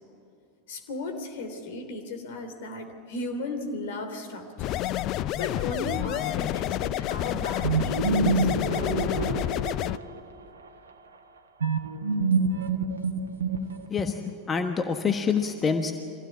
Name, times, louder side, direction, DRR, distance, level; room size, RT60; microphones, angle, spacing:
voice 1, 0.7-4.8 5.4-9.6, left 2 dB, 65° left, 6 dB, 3.2 m, -35 dB
sound 1, 4.6-10.0, left 13 dB, 45° left, 0.5 m, -29 dB
sound 2, 7.6-10.2 11.6-14.1, right 4 dB, 80° right, 1.4 m, -26 dB
voice 2, 13.9-15.9, left 5 dB, 25° left, 6 dB, 1.3 m, -26 dB
24.0 x 16.5 x 8.5 m, 2.7 s
figure-of-eight pair, 85°, 0 cm